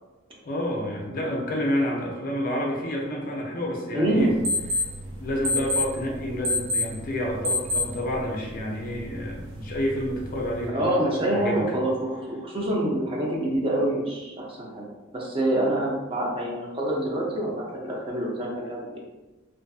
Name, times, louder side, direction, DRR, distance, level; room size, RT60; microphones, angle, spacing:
voice 1, 0.4-4.3 4.7-4.8 5.1-10.9 11.3-11.7, equal, 45° left, -1 dB, 0.4 m, -29 dB
voice 2, 3.9-4.3 10.7-14.9 15.1-19.0, right 1 dB, 25° right, -3 dB, 0.5 m, -26 dB
sound 1, 4.2-10.7, left 2 dB, 90° right, 0.6 m, -30 dB
2.5 x 2.4 x 2.3 m, 1.1 s
head